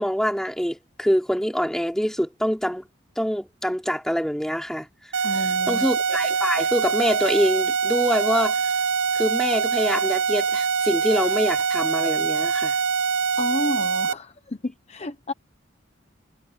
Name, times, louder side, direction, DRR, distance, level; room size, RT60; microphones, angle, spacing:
voice 1, 0.0-2.9 3.2-4.9 5.3-8.6 9.1-12.8, equal, 5° left, 3.0 m, -25 dB
sound 1, 5.1-14.1, right 6 dB, 65° right, 0.5 m, -24 dB
voice 2, 5.2-5.9 13.4-15.3, left 2 dB, 30° left, 0.8 m, -31 dB
head